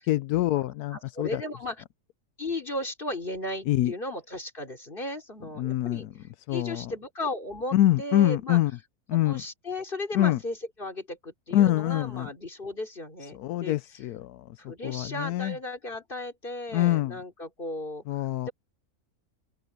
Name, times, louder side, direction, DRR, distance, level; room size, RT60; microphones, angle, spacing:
voice 1, 0.1-1.4 3.7-3.9 5.6-6.1 6.5-6.8 7.7-8.7 9.1-9.4 10.1-10.4 11.5-12.3 13.3-15.6 16.7-17.2 18.1-18.5, left 14 dB, 85° left, 1.1 m, -25 dB
voice 2, 0.9-1.8 2.4-6.1 6.5-8.6 9.1-13.8 14.7-18.0 18.4-18.5, left 1 dB, 35° left, 4.1 m, -35 dB
open air
omnidirectional pair, 1.6 m